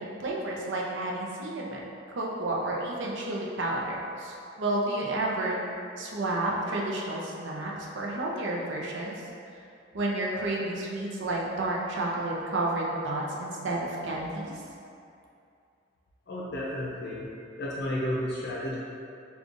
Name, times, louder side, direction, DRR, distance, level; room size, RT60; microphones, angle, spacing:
voice 1, 0.0-1.8 2.1-4.3 4.6-5.6 6.0-9.1 9.9-14.6, right 2 dB, 65° right, -3 dB, 0.6 m, -31 dB
voice 2, 16.3-17.3 17.6-18.8, left 1 dB, 60° left, -6 dB, 0.5 m, -32 dB
5.2 x 2.3 x 2.5 m, 2.5 s
head